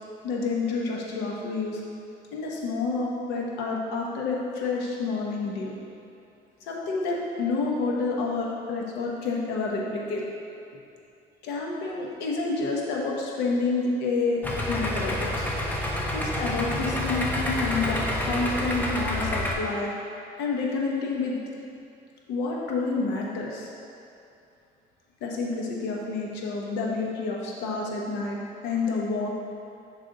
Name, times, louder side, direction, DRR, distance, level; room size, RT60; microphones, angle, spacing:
voice 1, 0.2-1.8 2.3-5.7 6.7-10.2 11.4-14.4 14.7-15.5 16.1-19.9 20.4-21.4 22.3-23.7 25.2-29.3, left 3 dB, 85° left, -2 dB, 1.0 m, -29 dB
Idling, 14.4-19.5, left 1 dB, 10° left, 0.7 m, -28 dB
7.8 x 3.4 x 3.8 m, 2.6 s
cardioid pair, 110°, 17 cm